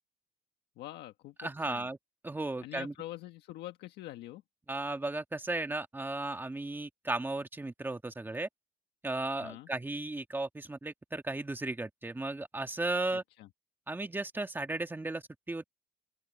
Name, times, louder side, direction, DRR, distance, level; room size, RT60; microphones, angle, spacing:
voice 1, 0.8-1.9 2.6-4.4 9.4-9.7 13.1-13.5, left 15 dB, 85° left, 1.5 m, -45 dB
voice 2, 1.4-2.0 2.2-2.9 4.7-8.5 9.0-13.2 13.9-15.7, right 2 dB, 10° right, 1.9 m, -35 dB
open air
cardioid pair, 110°, 17 cm